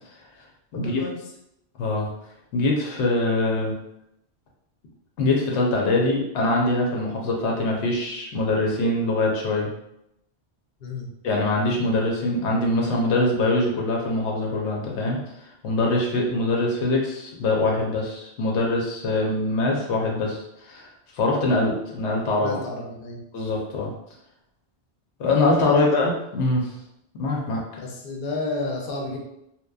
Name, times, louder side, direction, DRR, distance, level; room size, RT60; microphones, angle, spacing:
voice 1, 0.7-1.2 10.8-11.1 22.4-23.2 25.7-25.9 27.8-29.2, left 2 dB, 65° left, -1 dB, 0.7 m, -31 dB
voice 2, 1.8-2.1 2.5-3.7 5.2-9.7 11.2-15.2 15.6-20.9 21.1-22.6 23.3-23.9 25.2-26.7 27.2-27.6, left 2 dB, 90° left, -1 dB, 0.9 m, -23 dB
2.9 x 2.1 x 2.2 m, 0.81 s
omnidirectional pair, 1.1 m